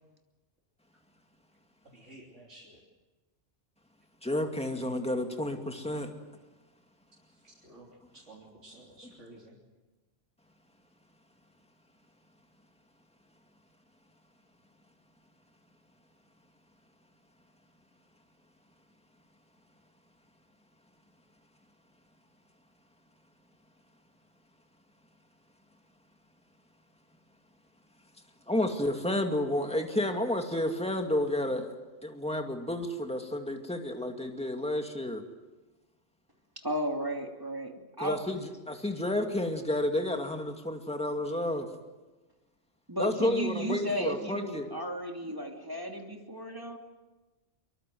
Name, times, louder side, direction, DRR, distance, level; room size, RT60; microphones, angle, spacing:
voice 1, 1.8-2.8 7.4-7.9 8.1-9.6, right 2 dB, 75° right, -4 dB, 3.9 m, -52 dB
voice 2, 4.2-6.1 9.0-9.1 28.5-35.2 38.0-41.7 43.0-44.7, left 1 dB, 5° left, 4 dB, 2.3 m, -31 dB
voice 3, 36.6-37.7 38.0-38.2 42.9-46.8, right 1 dB, 15° right, 2 dB, 2.8 m, -34 dB
25.0 x 23.0 x 7.8 m, 1.2 s
omnidirectional pair, 1.3 m